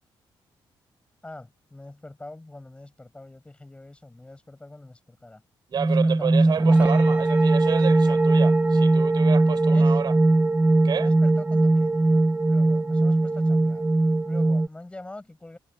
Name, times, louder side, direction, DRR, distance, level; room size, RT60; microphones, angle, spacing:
voice 1, 1.2-5.4 5.8-7.3 9.6-10.0 10.9-13.9 14.3-15.6, left 2 dB, 10° left, 7.8 m, -44 dB
voice 2, 5.7-10.2 10.8-11.1, right 7 dB, 55° right, 6.7 m, -30 dB
sound 1, 5.8-14.7, right 2 dB, 15° right, 1.4 m, -20 dB
cardioid pair, 135°, 9 cm